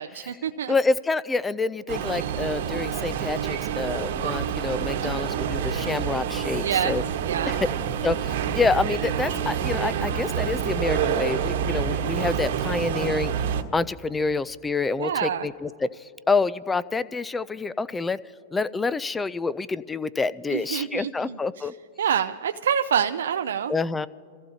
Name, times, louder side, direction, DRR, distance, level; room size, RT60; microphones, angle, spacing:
voice 1, 0.0-0.7 5.0-5.3 6.5-7.0 7.2-7.6 15.0-15.5 20.5-21.7 22.0-23.7, right 8 dB, 80° right, 7 dB, 0.4 m, -27 dB
voice 2, 0.7-7.0 7.5-7.7 8.0-13.5 13.7-18.2 18.5-21.7 23.7-24.1, left 3 dB, 10° left, 18 dB, 0.4 m, -27 dB
sound 1, 1.9-13.6, right 8 dB, 65° right, 1.2 m, -27 dB
27.5 x 14.5 x 2.8 m, 2.5 s
hypercardioid pair, 130°, 0 cm